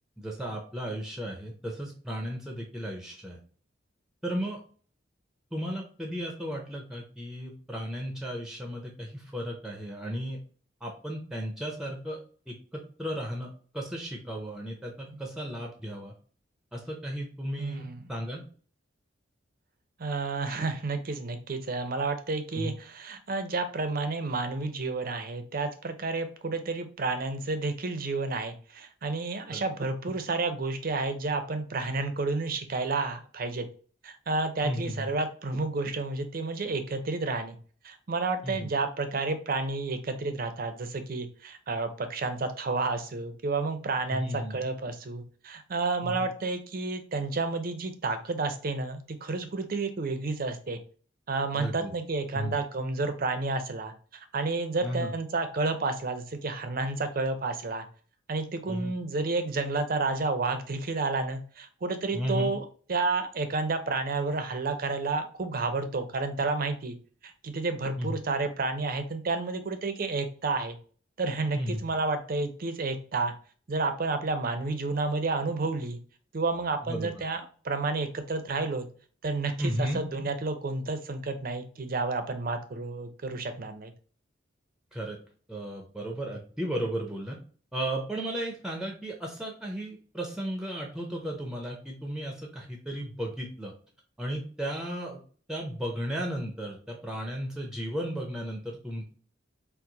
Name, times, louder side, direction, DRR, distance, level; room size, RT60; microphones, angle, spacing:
voice 1, 0.2-3.4 4.2-4.6 5.5-10.4 10.8-12.2 12.5-16.1 16.7-17.8 18.1-18.4 22.5-22.7 29.5-29.6 34.6-35.1 38.4-38.7 44.1-44.6 46.0-46.3 51.5-51.9 52.3-52.5 54.8-55.1 58.7-58.9 62.1-62.5 68.0-68.2 71.5-71.8 76.9-77.1 79.6-80.0 84.9-85.2 85.5-87.4 87.7-93.7 94.2-95.2 95.5-99.1, equal, 5° right, 1 dB, 0.6 m, -34 dB
voice 2, 17.6-18.0 20.0-33.6 34.0-37.6 37.8-50.8 51.3-53.9 54.3-57.9 58.3-66.9 67.2-70.8 71.2-73.3 73.7-76.0 76.3-78.9 79.2-83.9, right 3 dB, 50° right, 8 dB, 0.5 m, -30 dB
4.5 x 2.0 x 3.9 m, 0.42 s
head